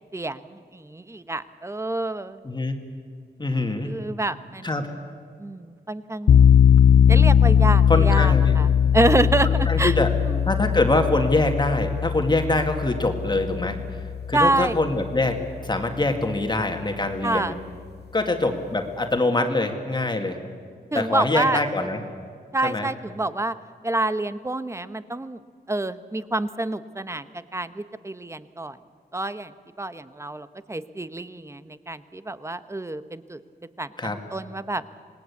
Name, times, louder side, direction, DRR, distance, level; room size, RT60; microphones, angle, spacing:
voice 1, 0.1-2.4 3.8-4.9 5.4-6.6 7.1-8.7 8.9-10.5 14.3-14.7 17.2-17.5 20.9-21.6 22.5-23.5 23.8-25.4 25.7-28.8 29.1-29.5 29.8-33.4 33.8-34.8, right 2 dB, 15° right, 13 dB, 0.8 m, -27 dB
voice 2, 2.4-2.8 3.4-3.9 4.6-4.9 7.9-8.5 9.7-10.1 10.5-13.8 14.3-17.6 18.1-20.4 20.9-22.0 22.6-22.9 34.0-34.2, left 2 dB, 25° left, 5 dB, 1.9 m, -24 dB
sound 1, 6.3-15.1, left 8 dB, 70° left, 0.7 m, -19 dB
26.5 x 20.0 x 8.4 m, 2.1 s
wide cardioid pair, 135°, 17 cm